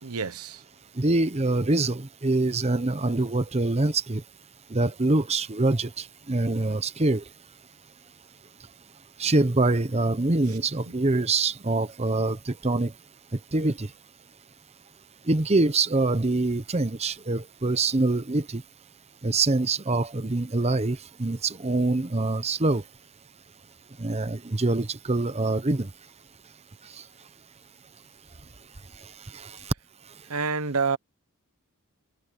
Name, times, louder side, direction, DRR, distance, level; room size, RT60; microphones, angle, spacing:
voice 1, 0.0-0.6 10.5-10.6 10.9-11.0 30.2-31.0, right 5 dB, 80° right, 1.1 m, -28 dB
voice 2, 1.0-4.2 4.7-7.2 9.2-12.9 13.3-13.9 15.3-18.6 19.2-22.8 24.0-25.9 26.9-27.0 29.3-29.7, right 2 dB, 30° right, 0.9 m, -25 dB
head